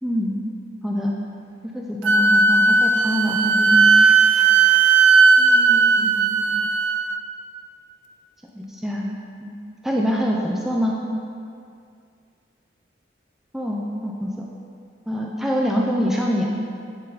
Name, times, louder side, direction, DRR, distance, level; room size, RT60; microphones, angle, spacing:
voice 1, 0.0-0.3 0.8-1.1 1.7-4.3 5.4-6.7 8.6-9.1 9.4-9.6 9.8-11.0 13.5-14.5 15.1-16.4, equal, ahead, -2 dB, 0.4 m, -25 dB
Wind instrument woodwind instrument, 2.0-7.2, right 4 dB, 75° right, 0.3 m, -16 dB
9.3 x 4.0 x 3.9 m, 2.3 s
head